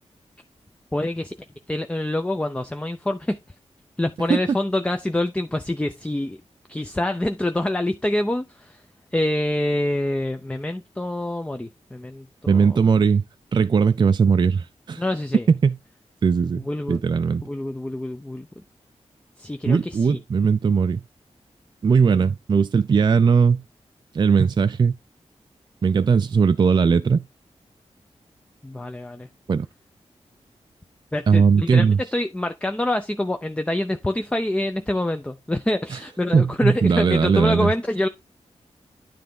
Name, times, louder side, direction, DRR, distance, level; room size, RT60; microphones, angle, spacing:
voice 1, 0.9-1.3 1.7-3.4 4.0-6.4 6.7-8.8 9.1-12.8 15.0-15.5 16.6-17.0 17.4-18.5 19.4-20.2 28.6-29.3 31.1-38.1, left 1 dB, 10° left, 0.6 m, -26 dB
voice 2, 12.5-13.2 13.5-15.0 15.5-15.8 16.2-17.4 19.7-21.0 21.8-23.6 24.1-25.0 25.8-27.2 29.5-29.7 31.3-32.0 36.3-37.7, right 5 dB, 40° right, 0.4 m, -19 dB
9.9 x 3.4 x 5.3 m
wide cardioid pair, 110°, 11 cm